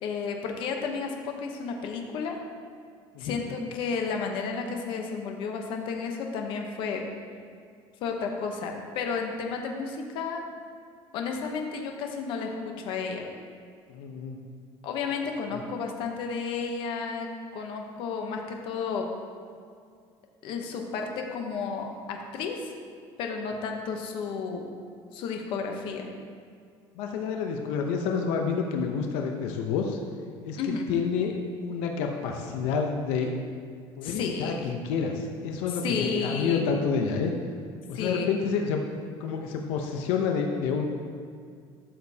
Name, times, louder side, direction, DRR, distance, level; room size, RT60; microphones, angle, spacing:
voice 1, 0.0-2.4 3.2-7.0 8.0-10.4 11.1-13.2 14.8-17.3 17.5-19.0 20.4-22.6 23.2-24.6 25.1-26.1 30.6-30.9 34.0-34.6 35.8-36.7 37.9-38.3, left 5 dB, 55° left, 3 dB, 0.9 m, -32 dB
voice 2, 13.9-14.4 27.0-30.0 30.4-31.4 31.6-33.3 34.0-37.3 37.9-38.8 39.2-40.9, left 5 dB, 85° left, 3 dB, 0.7 m, -29 dB
12.5 x 6.8 x 2.8 m, 2.2 s
cardioid pair, 170°, 10 cm